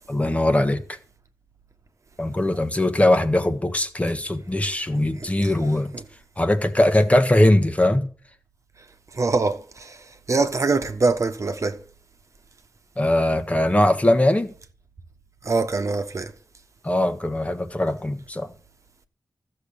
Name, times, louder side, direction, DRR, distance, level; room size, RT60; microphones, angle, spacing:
voice 1, 0.1-1.0 2.2-5.9 6.4-8.1 13.0-14.5 16.8-18.5, left 1 dB, 20° left, 1.5 m, -20 dB
voice 2, 5.2-5.5 5.9-6.0 9.1-11.8 15.4-16.3, right 3 dB, 50° right, 1.3 m, -24 dB
14.5 x 6.9 x 8.5 m
wide cardioid pair, 105°, 7 cm